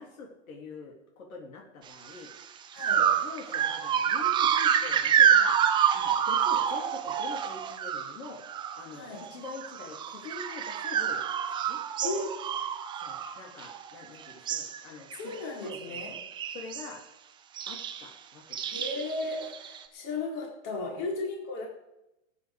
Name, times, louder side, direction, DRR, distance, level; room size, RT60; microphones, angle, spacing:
voice 1, 0.0-2.3 2.9-5.5 5.9-8.4 8.7-11.2 11.6-11.8 13.0-15.4 15.7-16.2 16.5-17.0 17.7-18.8, left 4 dB, 85° left, 1 dB, 3.7 m, -45 dB
sound 1, 2.1-2.3 2.8-8.9 9.2-14.0 14.3-14.8 15.1-15.4 15.7-16.9 17.6-18.1 18.5-19.8, right 8 dB, 10° right, 0.6 m, -27 dB
voice 2, 2.7-3.0 8.9-9.3 12.0-12.3 15.1-16.1 18.7-21.7, left 2 dB, 35° left, 0 dB, 4.1 m, -35 dB
16.5 x 9.5 x 5.3 m, 0.91 s
supercardioid pair, 160°, 41 cm